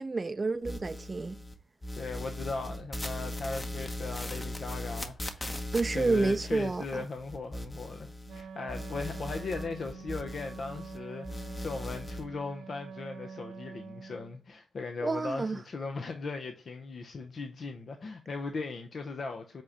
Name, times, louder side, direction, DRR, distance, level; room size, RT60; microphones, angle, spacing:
voice 1, 0.0-1.4 5.7-7.0 15.0-15.6, right 3 dB, 40° right, 0.4 m, -29 dB
sound 1, 0.6-1.5 1.8-8.4 8.7-11.0 11.2-12.2, left 1 dB, 30° left, 1.0 m, -39 dB
voice 2, 1.9-5.6 5.9-19.6, left 4 dB, 60° left, 0.7 m, -38 dB
Wind instrument woodwind instrument, 8.2-14.4, right 5 dB, 80° right, 0.7 m, -45 dB
7.7 x 2.9 x 4.7 m
supercardioid pair, 40°, 0 cm